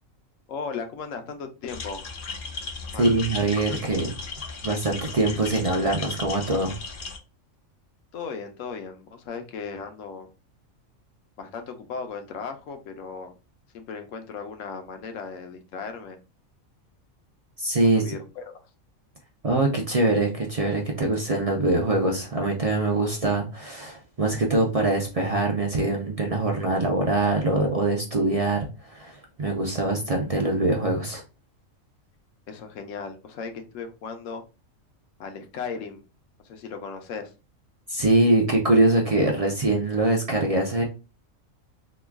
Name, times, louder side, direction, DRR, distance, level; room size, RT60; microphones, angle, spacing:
voice 1, 0.5-2.0 2.9-3.1 8.1-10.3 11.4-13.4 13.7-16.2 17.8-18.6 32.5-34.4 35.2-36.0 36.4-37.3, left 5 dB, 75° left, 6 dB, 1.0 m, -36 dB
sound 1, 1.7-7.2, left 4 dB, 55° left, 0.6 m, -36 dB
voice 2, 3.0-4.1 4.6-6.7 17.6-18.2 19.4-28.7 28.9-31.2 37.9-40.8, right 2 dB, 55° right, 0 dB, 0.4 m, -23 dB
3.0 x 2.3 x 3.4 m, 0.30 s
omnidirectional pair, 1.4 m